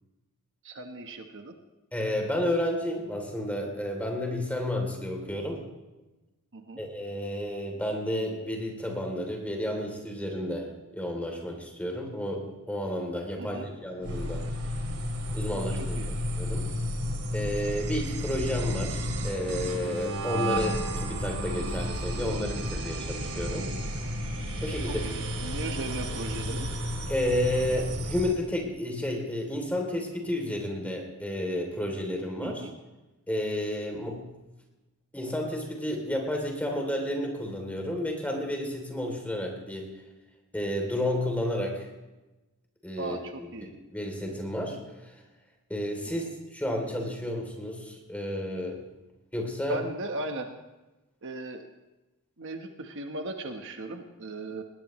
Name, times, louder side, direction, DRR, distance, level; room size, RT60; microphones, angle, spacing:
voice 1, 0.6-1.5 6.5-6.8 13.4-13.7 15.5-15.7 16.0-16.1 24.9-26.7 32.4-32.7 43.0-43.7 49.7-50.5 51.2-51.6 52.4-54.6, right 2 dB, 60° right, 5 dB, 1.2 m, -37 dB
voice 2, 1.9-5.6 6.8-14.4 15.3-16.7 17.3-23.7 24.6-25.1 27.1-32.7 33.3-34.2 35.1-40.0 40.5-41.9 42.8-45.2 45.7-48.8 49.3-49.8, left 1 dB, 5° left, 1 dB, 3.1 m, -31 dB
sound 1, 14.0-28.4, equal, 90° right, 2.5 m, -32 dB
20.0 x 18.5 x 3.1 m, 1.1 s
head